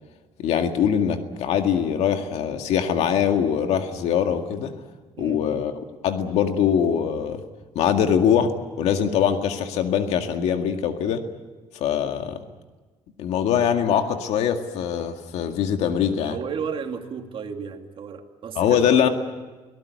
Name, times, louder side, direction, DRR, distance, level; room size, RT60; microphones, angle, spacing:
voice 1, 0.4-4.7 5.2-5.7 6.0-7.4 7.8-8.5 8.8-11.2 11.7-12.4 13.2-16.4 18.6-19.1, left 8 dB, 85° left, 6 dB, 2.0 m, -22 dB
voice 2, 16.3-18.8, right 6 dB, 55° right, 5 dB, 2.5 m, -33 dB
24.0 x 18.0 x 9.5 m, 1.3 s
cardioid pair, 95°, 11 cm